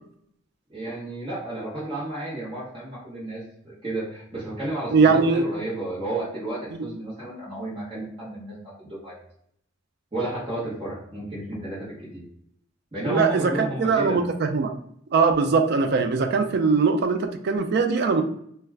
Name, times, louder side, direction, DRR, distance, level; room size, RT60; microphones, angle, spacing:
voice 1, 0.7-9.1 10.1-12.2 12.9-14.3, right 1 dB, 25° right, -9 dB, 0.9 m, -32 dB
voice 2, 4.9-5.4 13.0-14.2 14.5-14.7 15.1-18.2, right 4 dB, 50° right, 6 dB, 0.3 m, -21 dB
2.3 x 2.2 x 3.3 m, 0.69 s
head